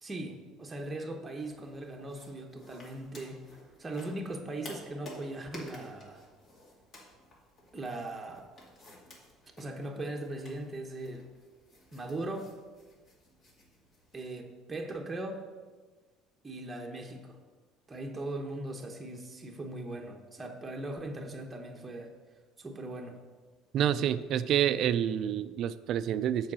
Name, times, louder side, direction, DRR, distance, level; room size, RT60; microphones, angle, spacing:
voice 1, 0.0-3.4 3.8-6.2 7.7-8.5 9.6-11.3 11.9-12.5 14.1-15.4 16.4-17.4 17.9-22.1 22.6-23.2, right 2 dB, 15° right, 2 dB, 0.9 m, -39 dB
sound 1, 1.4-14.3, left 1 dB, 40° left, 2.3 m, -52 dB
voice 2, 23.7-26.5, right 10 dB, 55° right, 14 dB, 0.3 m, -28 dB
7.3 x 4.7 x 6.1 m, 1.4 s
cardioid pair, 120°, 0 cm